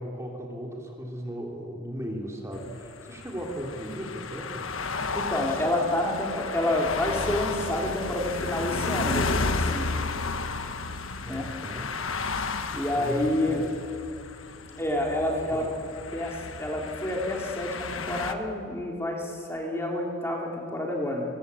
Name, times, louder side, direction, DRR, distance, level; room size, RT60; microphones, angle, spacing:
voice 1, 0.0-4.7 11.2-12.0 13.0-13.6 15.5-15.7, equal, 15° right, -1 dB, 3.2 m, -37 dB
sound 1, 2.5-18.3, left 4 dB, 75° left, 1.4 m, -33 dB
voice 2, 5.1-9.9 11.2-11.5 12.7-13.6 14.8-15.6 16.1-21.3, left 1 dB, 10° left, -1 dB, 3.3 m, -28 dB
27.0 x 22.5 x 8.4 m, 2.6 s
head